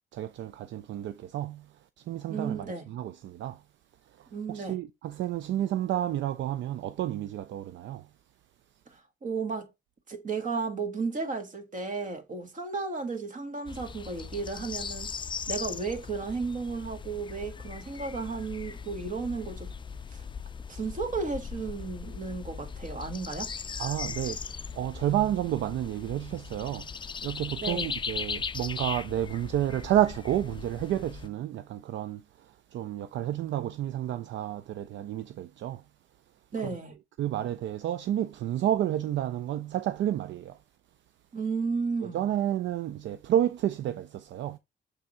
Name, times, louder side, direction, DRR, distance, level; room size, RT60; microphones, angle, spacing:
voice 1, 0.1-1.7 2.0-3.6 4.2-8.1 23.8-26.9 27.2-35.8 37.2-40.6 42.1-44.6, right 12 dB, 65° right, 0.4 m, -30 dB
voice 2, 2.3-2.9 4.3-4.8 8.9-9.7 10.1-15.1 15.5-19.7 20.1-20.2 20.7-23.5 27.6-28.0 36.5-37.0 41.3-42.2, right 4 dB, 40° right, 1.6 m, -34 dB
sound 1, 13.7-31.3, left 6 dB, 25° left, 0.4 m, -39 dB
6.8 x 3.5 x 4.3 m
cardioid pair, 90°, 20 cm